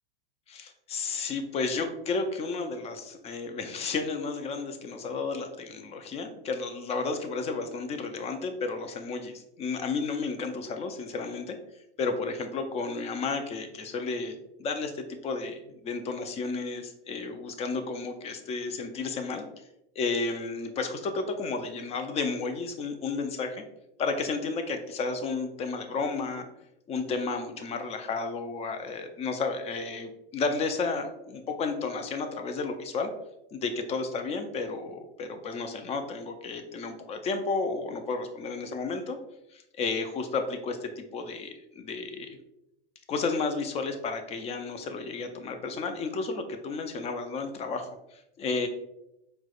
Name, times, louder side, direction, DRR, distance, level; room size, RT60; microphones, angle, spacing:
voice 1, 0.5-11.6 12.0-19.5 20.0-23.6 24.0-26.5 26.9-33.1 33.5-39.2 39.5-42.4 43.1-48.7, left 4 dB, 20° left, 6 dB, 0.3 m, -32 dB
4.5 x 2.1 x 2.4 m, 0.86 s
hypercardioid pair, 105°, 30 cm